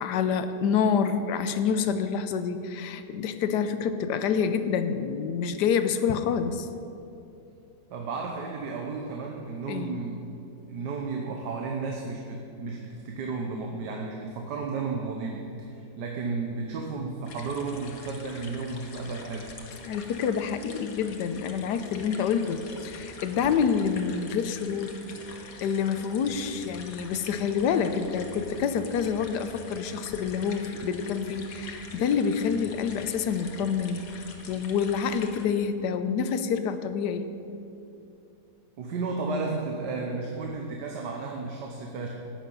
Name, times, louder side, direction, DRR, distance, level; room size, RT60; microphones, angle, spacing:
voice 1, 0.0-6.7 9.7-10.0 19.9-25.0 25.2-37.3, left 6 dB, 85° left, 10 dB, 1.3 m, -27 dB
voice 2, 7.9-10.3 10.7-19.6 38.7-42.1, right 4 dB, 85° right, 1 dB, 1.6 m, -33 dB
sound 1, 17.2-35.4, left 3 dB, 60° left, 1.5 m, -45 dB
13.5 x 9.2 x 5.5 m, 2.7 s
omnidirectional pair, 1.7 m